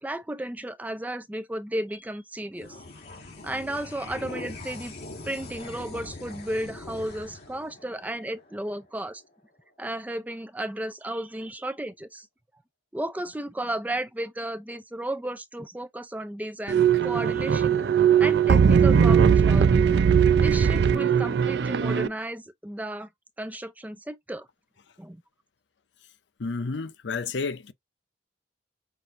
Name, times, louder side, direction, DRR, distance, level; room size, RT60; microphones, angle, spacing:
voice 1, 0.0-2.8 3.4-4.9 5.2-9.2 9.8-12.3 12.9-17.8 18.2-19.9 20.4-23.1 23.4-24.5 25.0-25.2, right 1 dB, 10° right, 0.4 m, -34 dB
sound 1, 2.5-9.3, left 2 dB, 60° left, 2.3 m, -42 dB
sound 2, 16.7-22.1, right 7 dB, 70° right, 0.4 m, -19 dB
voice 2, 26.4-27.7, left 4 dB, 85° left, 0.6 m, -31 dB
5.9 x 2.6 x 2.5 m
head